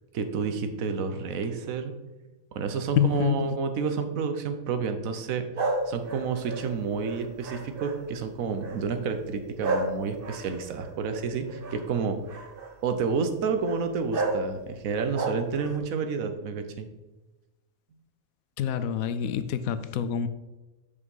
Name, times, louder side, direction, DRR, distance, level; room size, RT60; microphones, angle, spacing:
voice 1, 0.1-1.9 2.5-5.5 5.9-12.2 12.8-16.9, right 5 dB, 75° right, 1.3 m, -30 dB
voice 2, 3.0-3.5 18.6-20.3, left 9 dB, 85° left, 1.0 m, -26 dB
sound 1, 5.6-8.1 8.6-9.0 9.6-11.8 12.3-12.7 13.6-13.8 14.1-14.4 14.9-15.8, right 3 dB, 45° right, 1.2 m, -32 dB
6.5 x 5.3 x 5.4 m
omnidirectional pair, 1.4 m